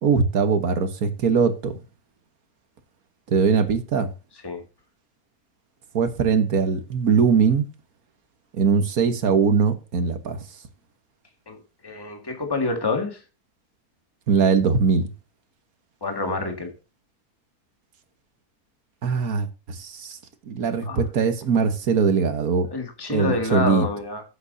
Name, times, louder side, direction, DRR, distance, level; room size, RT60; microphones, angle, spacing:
voice 1, 0.0-1.7 3.3-4.1 5.9-7.7 8.5-10.4 14.3-15.1 19.0-20.2 20.5-22.7 23.1-23.9, right 5 dB, 70° right, 1.7 m, -21 dB
voice 2, 11.5-13.2 16.0-16.7 20.9-21.0 22.7-24.2, left 3 dB, 15° left, 2.0 m, -27 dB
14.5 x 8.0 x 2.7 m
omnidirectional pair, 1.6 m